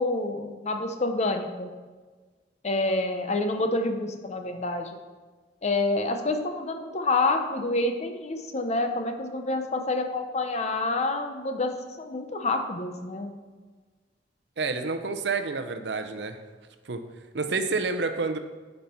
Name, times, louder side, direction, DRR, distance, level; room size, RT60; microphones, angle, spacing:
voice 1, 0.0-1.7 2.6-5.0 5.6-13.3, left 2 dB, 40° left, 6 dB, 0.7 m, -28 dB
voice 2, 14.6-16.4 16.9-17.0 17.3-18.4, right 4 dB, 70° right, 7 dB, 0.7 m, -28 dB
9.5 x 5.4 x 4.5 m, 1.4 s
head